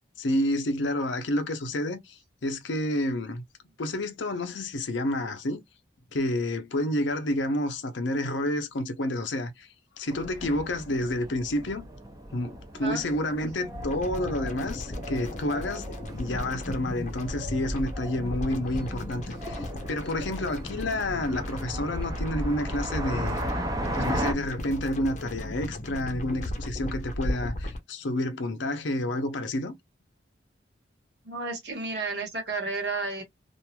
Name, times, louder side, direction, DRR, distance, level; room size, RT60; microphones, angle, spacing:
voice 1, 0.2-3.4 3.8-5.6 6.1-9.7 10.0-11.8 12.3-15.8 16.2-23.4 24.0-29.7, left 1 dB, 80° left, 0.7 m, -29 dB
sound 1, 10.1-24.3, right 1 dB, 20° right, 0.6 m, -37 dB
voice 2, 12.8-13.1 31.2-33.2, right 3 dB, 60° right, 1.2 m, -32 dB
sound 2, 13.7-27.8, left 1 dB, 40° left, 0.6 m, -35 dB
3.0 x 2.5 x 2.2 m
head